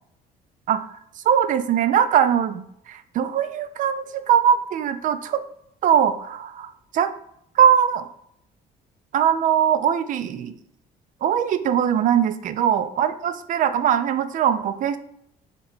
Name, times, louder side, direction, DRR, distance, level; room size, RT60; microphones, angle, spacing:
voice 1, 1.2-5.4 5.8-7.1 7.6-8.1 9.1-10.6 11.2-15.0, right 9 dB, 50° right, 11 dB, 0.4 m, -21 dB
2.9 x 2.8 x 4.3 m, 0.71 s
cardioid pair, 110°, 17 cm